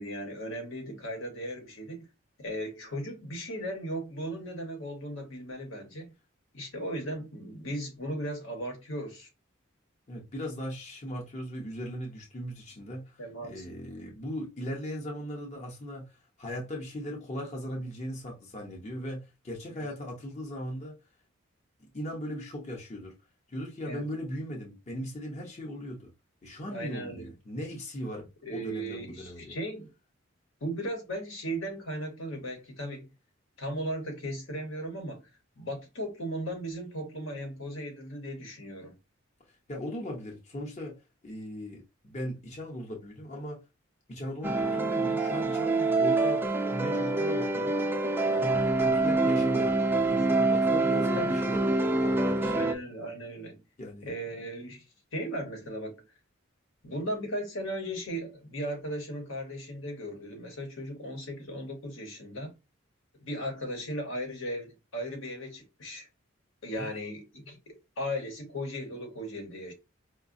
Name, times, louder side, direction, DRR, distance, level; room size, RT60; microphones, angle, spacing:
voice 1, 0.0-2.1 2.4-6.1 6.5-9.3 13.2-13.7 19.7-19.9 23.8-24.1 26.7-27.3 28.4-29.9 30.6-33.1 33.6-35.2 35.6-39.0 51.1-51.4 52.5-53.6 54.0-54.8 55.1-56.0 56.8-62.5 63.2-66.1 66.6-69.7, equal, 75° left, 1.0 m, -37 dB
voice 2, 10.1-21.0 21.9-23.1 23.5-26.1 26.4-29.6 39.7-43.6 44.1-47.8 48.2-51.6 52.0-52.8 53.8-54.1 66.8-66.9, equal, 35° left, 0.7 m, -38 dB
sound 1, 44.4-52.7, right 2 dB, 10° right, 0.3 m, -26 dB
4.8 x 2.2 x 2.5 m
head